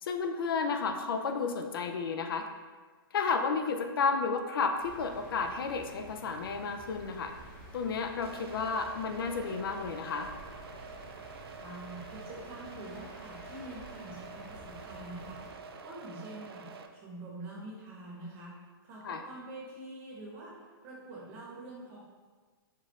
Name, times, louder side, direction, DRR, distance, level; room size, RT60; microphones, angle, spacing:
voice 1, 0.0-2.5 3.1-7.3 7.7-10.3 19.0-19.2, left 5 dB, 65° left, 6 dB, 0.5 m, -32 dB
sound 1, 4.8-15.5, equal, 15° left, 1.1 m, -51 dB
sound 2, 8.2-16.9, right 5 dB, 80° right, 0.5 m, -47 dB
voice 2, 11.6-18.5 18.8-22.0, right 2 dB, 20° right, -4 dB, 0.9 m, -46 dB
5.2 x 2.5 x 4.1 m, 1.4 s
hypercardioid pair, 170°, 13 cm